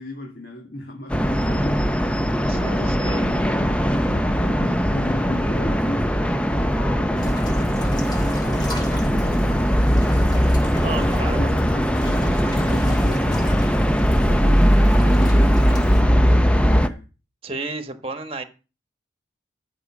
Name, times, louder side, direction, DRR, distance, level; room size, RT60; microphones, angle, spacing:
voice 1, 0.0-10.7 10.9-13.9 14.2-17.1, left 1 dB, 60° left, 1.9 m, -36 dB
sound 1, 1.1-16.9, equal, 5° left, 0.6 m, -19 dB
voice 2, 2.5-3.3 10.7-11.5 17.4-18.4, right 2 dB, 30° right, 1.3 m, -32 dB
sound 2, 7.2-16.0, left 1 dB, 25° left, 4.3 m, -39 dB
14.0 x 5.1 x 7.2 m
head